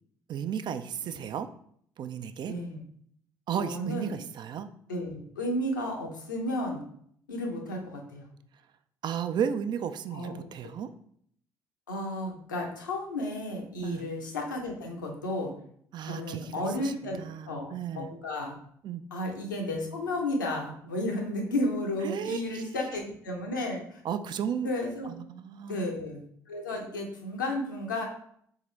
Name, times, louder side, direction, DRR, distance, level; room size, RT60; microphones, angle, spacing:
voice 1, 0.3-1.5 2.0-2.5 3.5-4.7 9.0-10.9 13.8-14.1 15.9-18.1 18.8-19.0 22.0-22.8 24.0-24.7 25.0-25.8, right 8 dB, 50° right, 11 dB, 0.4 m, -34 dB
voice 2, 2.5-2.8 3.5-4.2 4.9-6.8 7.3-8.3 10.1-10.5 11.9-15.5 16.1-17.2 17.5-18.6 19.1-24.0 24.6-25.1 25.7-28.1, left 1 dB, 90° left, 0 dB, 0.6 m, -33 dB
3.7 x 3.6 x 3.1 m, 0.65 s
figure-of-eight pair, 50°, 10 cm